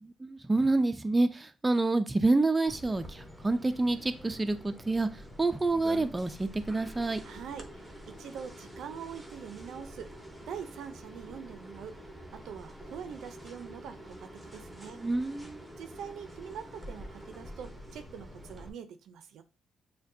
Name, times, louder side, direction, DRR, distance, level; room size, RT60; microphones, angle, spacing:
voice 1, 0.0-5.1 5.4-7.2 15.0-15.6, right 2 dB, 15° right, 0.4 m, -28 dB
sound 1, 2.7-18.7, equal, ahead, 0.9 m, -47 dB
voice 2, 7.2-10.1 10.5-12.0 12.3-15.0 15.8-19.4, right 7 dB, 75° right, 0.5 m, -44 dB
6.4 x 2.2 x 2.7 m
cardioid pair, 90°, 0 cm